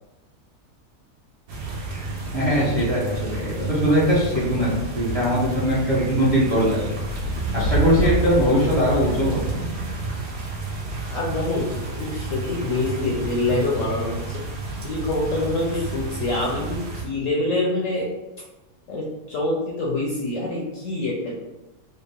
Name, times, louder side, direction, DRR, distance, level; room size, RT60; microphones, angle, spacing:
sound 1, 1.5-17.0, right 2 dB, 65° right, 1.1 m, -29 dB
voice 1, 2.3-6.8 7.5-9.5, equal, 30° right, -7 dB, 0.7 m, -21 dB
voice 2, 11.1-14.4 14.8-18.1 18.9-21.3, left 2 dB, 70° left, -3 dB, 0.8 m, -26 dB
3.3 x 2.5 x 3.3 m, 1.0 s
omnidirectional pair, 1.7 m